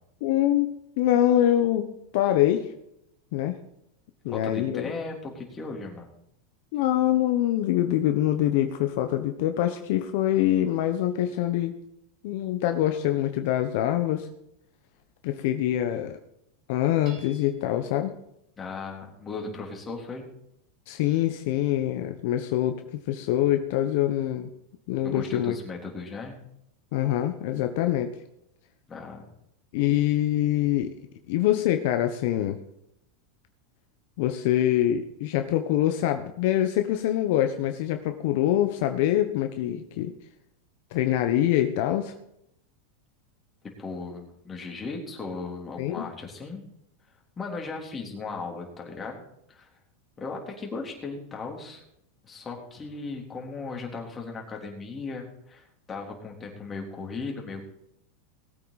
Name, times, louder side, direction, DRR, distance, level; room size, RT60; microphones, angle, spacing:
voice 1, 0.2-2.7 3.3-3.6 4.2-4.9 6.7-11.8 12.2-14.3 15.2-16.2 16.7-18.1 20.9-24.5 24.9-25.6 26.9-28.1 29.7-30.9 31.3-32.6 34.2-40.1 40.9-42.1 45.8-46.1, left 12 dB, 65° left, 7 dB, 1.1 m, -24 dB
voice 2, 4.3-6.1 18.6-20.3 25.0-26.4 28.9-29.3 43.8-46.6 47.4-49.2 49.5-49.7 50.2-51.8 52.2-57.7, left 4 dB, 20° left, 1 dB, 3.5 m, -37 dB
Hammer / Chink clink, 17.0-17.8, right 5 dB, 40° right, 4.3 m, -52 dB
19.5 x 8.7 x 4.2 m, 0.78 s
supercardioid pair, 125°, 0 cm